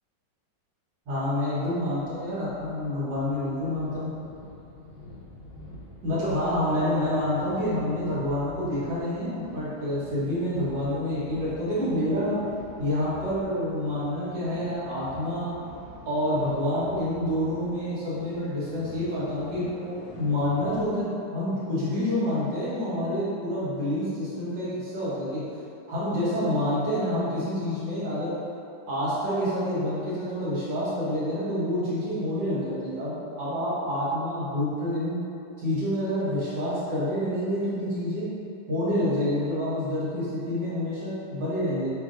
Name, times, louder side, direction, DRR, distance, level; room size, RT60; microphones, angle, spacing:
voice 1, 1.1-4.1 6.0-12.4 12.8-15.5 16.0-25.4 25.9-28.3 28.9-35.2 35.6-38.3 38.7-41.9, left 1 dB, 80° right, -11 dB, 2.1 m, -28 dB
sound 1, 1.8-21.0, left 2 dB, 80° left, 1.5 m, -46 dB
5.9 x 2.6 x 2.5 m, 2.7 s
omnidirectional pair, 1.9 m